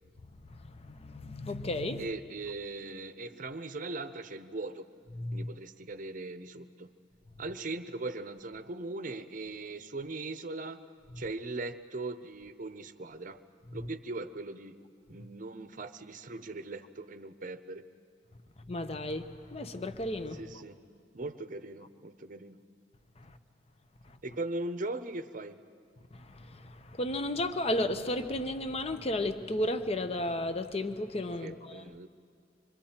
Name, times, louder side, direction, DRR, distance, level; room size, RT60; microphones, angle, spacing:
voice 1, 0.5-2.1 5.2-5.5 18.7-20.4 23.2-23.4 26.1-31.8, left 1 dB, 35° left, 9 dB, 0.8 m, -34 dB
voice 2, 2.0-4.9 5.3-6.9 7.4-10.8 11.2-13.4 13.7-14.7 15.1-17.8 20.3-20.8 21.1-22.6 24.2-25.6 31.4-32.1, right 2 dB, 45° right, 11 dB, 0.7 m, -39 dB
26.0 x 23.5 x 4.4 m, 2.2 s
head